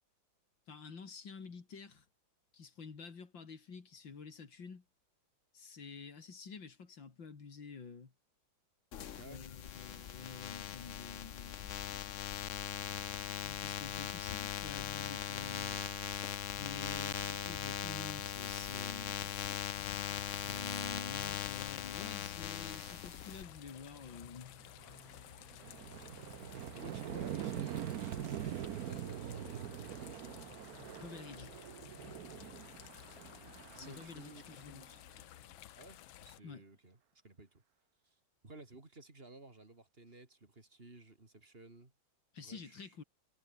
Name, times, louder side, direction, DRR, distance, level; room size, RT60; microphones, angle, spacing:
voice 1, 0.7-2.1 2.5-4.8 5.5-8.1 9.2-11.8 13.4-16.3 16.6-19.4 20.4-24.5 31.0-31.5 33.7-35.0 36.4-36.6 42.3-43.0, left 5 dB, 70° left, 3.6 m, -49 dB
sound 1, 8.9-23.4, left 9 dB, 50° left, 1.0 m, -40 dB
voice 2, 9.1-9.5 16.6-17.0 26.7-30.5 31.4-32.8 33.7-35.0 35.7-37.0 37.2-37.6 38.0-41.9 42.4-42.9, right 2 dB, 30° right, 3.2 m, -55 dB
sound 2, 19.7-36.4, left 14 dB, 90° left, 1.6 m, -54 dB
sound 3, 23.8-24.0 24.4-35.2, right 11 dB, 60° right, 1.1 m, -44 dB
omnidirectional pair, 2.1 m